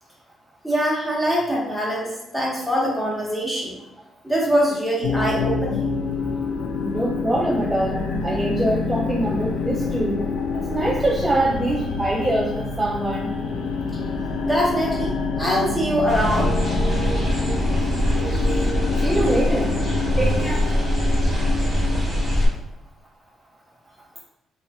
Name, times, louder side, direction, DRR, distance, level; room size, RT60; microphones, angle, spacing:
voice 1, 0.6-3.8 4.2-5.9 13.9-14.0 14.4-16.5, equal, 5° left, -4 dB, 1.0 m, -23 dB
sound 1, 5.0-22.5, left 4 dB, 85° left, 0.4 m, -27 dB
voice 2, 6.8-10.2 10.5-13.3 19.0-19.7 20.2-20.7, right 1 dB, 15° right, -4 dB, 0.4 m, -24 dB
sound 2, 16.1-22.5, equal, 35° right, 1.1 m, -22 dB
2.9 x 2.3 x 2.7 m, 0.91 s
cardioid pair, 90°, 0 cm